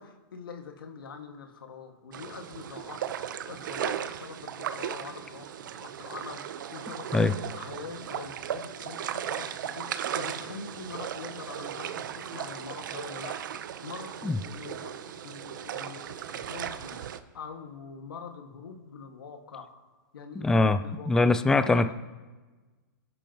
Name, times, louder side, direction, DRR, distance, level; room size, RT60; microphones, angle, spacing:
voice 1, 0.0-3.2 3.5-13.4 13.8-17.0 17.3-19.7 20.1-21.3 21.6-21.9, left 5 dB, 85° left, 3 dB, 2.1 m, -44 dB
sound 1, 2.1-17.2, right 9 dB, 60° right, 0.9 m, -37 dB
voice 2, 20.4-20.8 21.1-21.9, left 3 dB, 5° left, 11 dB, 0.4 m, -22 dB
24.0 x 11.0 x 3.1 m, 1.3 s
hypercardioid pair, 150°, 11 cm